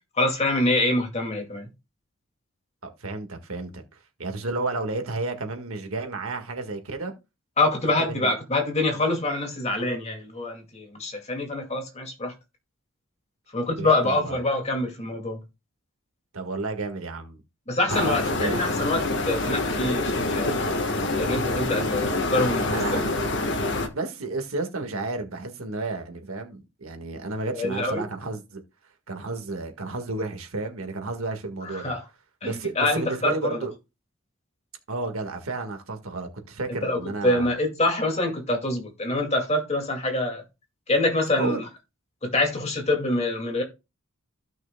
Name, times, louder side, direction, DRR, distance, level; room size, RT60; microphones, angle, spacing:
voice 1, 0.2-1.7 7.6-12.3 13.5-15.4 17.7-20.5 21.2-23.0 27.5-28.0 31.6-32.0 32.4-33.6 36.8-40.4 40.9-41.6 42.2-43.6, left 2 dB, 30° left, 2.3 m, -25 dB
voice 2, 2.8-3.8 4.2-7.1 7.8-8.3 13.8-14.4 16.3-17.4 17.9-18.6 22.7-23.2 23.9-28.6 29.1-31.9 32.4-33.7 34.9-37.5 41.4-41.6, right 3 dB, 85° right, 1.7 m, -32 dB
sound 1, 17.9-23.9, left 2 dB, 60° left, 1.4 m, -26 dB
15.5 x 6.0 x 2.3 m
head